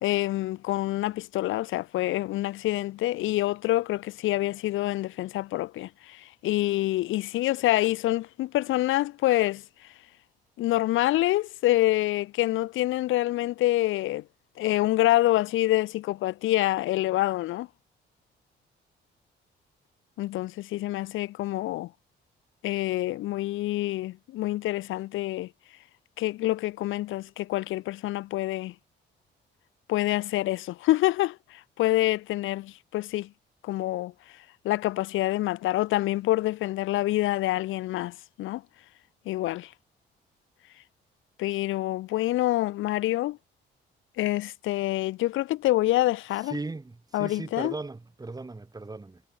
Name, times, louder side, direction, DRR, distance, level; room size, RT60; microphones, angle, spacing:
voice 1, 0.0-9.6 10.6-14.2 14.6-17.7 20.2-21.9 22.6-25.5 26.2-28.7 29.9-33.3 33.6-34.1 34.6-38.6 39.3-39.7 41.4-43.4 44.2-46.5 47.1-47.7, left 16 dB, 85° left, 1.1 m, -26 dB
voice 2, 46.3-49.2, right 3 dB, 20° right, 3.2 m, -37 dB
cardioid pair, 90°, 20 cm